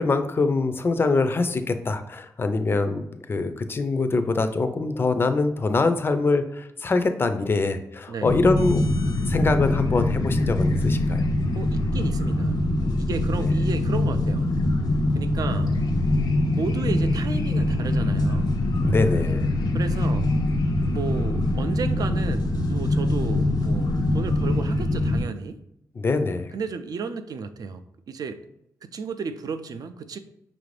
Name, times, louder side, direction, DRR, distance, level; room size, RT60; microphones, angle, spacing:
voice 1, 0.0-8.9 9.3-11.2 13.4-13.5 18.8-19.5 26.0-26.6, left 3 dB, 35° left, 8 dB, 0.4 m, -24 dB
voice 2, 8.1-8.4 11.5-12.6 13.0-14.5 15.2-15.8 16.5-18.6 19.7-20.3 20.9-25.6 26.5-28.4 28.8-30.2, right 5 dB, 65° right, 9 dB, 0.4 m, -33 dB
sound 1, 8.2-25.2, left 1 dB, 80° left, 0.6 m, -23 dB
5.6 x 2.5 x 3.2 m, 0.78 s
wide cardioid pair, 160°, 7 cm